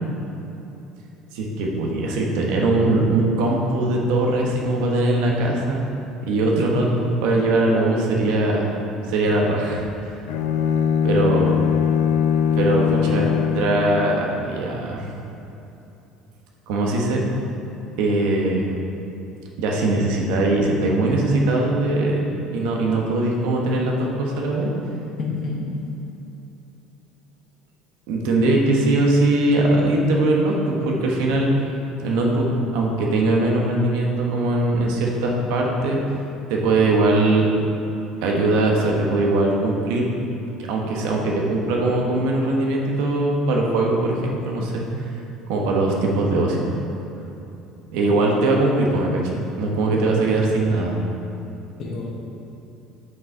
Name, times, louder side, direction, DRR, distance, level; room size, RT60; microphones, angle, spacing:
voice 1, 1.3-5.8 6.2-8.7 9.1-9.9 11.0-11.5 12.6-15.1 16.7-17.2 18.0-18.6 19.6-24.7 28.1-30.5 30.8-31.5 32.0-32.5 32.7-36.0 36.5-37.5 38.2-40.1 40.7-44.8 45.5-46.6 47.9-51.0, right 2 dB, 80° right, -1 dB, 1.2 m, -21 dB
Bowed string instrument, 10.3-14.3, left 8 dB, 85° left, 0.4 m, -21 dB
voice 2, 25.2-25.9 51.8-52.1, left 4 dB, 40° left, -2 dB, 1.2 m, -29 dB
6.2 x 5.5 x 4.6 m, 2.9 s
cardioid pair, 155°, 0 cm